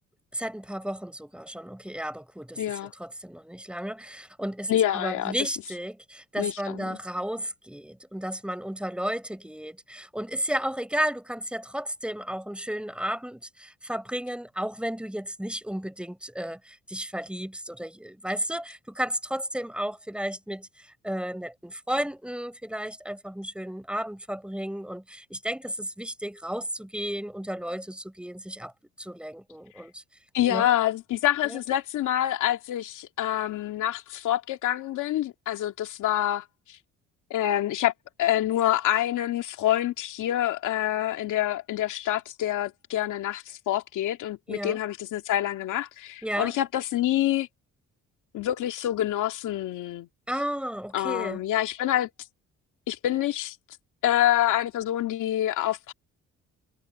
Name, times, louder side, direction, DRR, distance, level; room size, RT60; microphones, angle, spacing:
voice 1, 0.3-28.7 29.0-30.0 30.5-30.7 31.4-31.6 44.5-44.8 46.2-46.6 50.3-51.4, equal, 5° right, 5.8 m, -33 dB
voice 2, 2.6-2.9 4.7-5.3 6.4-7.0 30.3-36.4 37.3-37.9 38.2-47.5 48.3-50.1 50.9-52.1 52.9-53.6 54.0-55.9, left 12 dB, 85° left, 2.3 m, -26 dB
cardioid pair, 90°, 30 cm